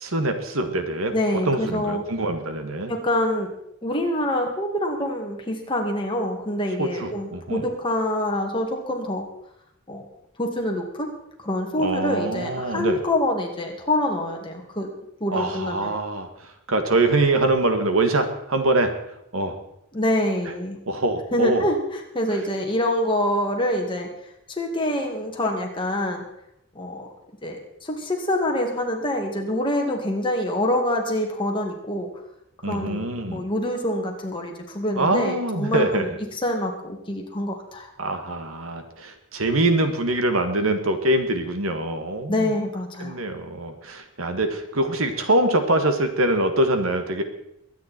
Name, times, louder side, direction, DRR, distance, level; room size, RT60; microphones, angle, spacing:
voice 1, 0.0-1.1 1.4-2.9 6.8-7.6 11.8-13.0 15.3-18.9 19.3-19.6 20.9-21.6 32.6-33.4 35.0-36.1 38.0-42.5 43.0-47.2, right 2 dB, 80° right, 7 dB, 1.8 m, -24 dB
voice 2, 1.1-2.0 2.9-3.5 3.8-9.3 9.9-10.0 10.4-11.1 11.4-14.9 15.2-15.9 19.9-20.8 21.3-24.1 24.5-26.2 26.7-27.1 27.4-32.1 32.6-37.9 42.3-43.1, left 1 dB, 25° left, 1 dB, 2.3 m, -26 dB
22.5 x 9.5 x 4.5 m, 0.79 s
head